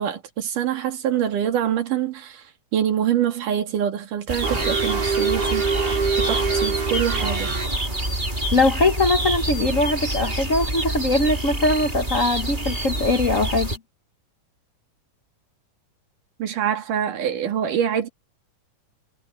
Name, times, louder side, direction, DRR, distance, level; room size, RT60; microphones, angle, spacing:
voice 1, 0.0-2.4 2.7-5.7 6.2-7.6 16.4-18.1, right 9 dB, 75° right, 3.6 m, -25 dB
sound 1, 4.3-13.8, right 1 dB, 15° right, 3.7 m, -27 dB
sound 2, 4.4-7.7, right 5 dB, 45° right, 6.4 m, -25 dB
voice 2, 8.5-13.7, left 2 dB, 80° left, 0.7 m, -21 dB
omnidirectional pair, 3.7 m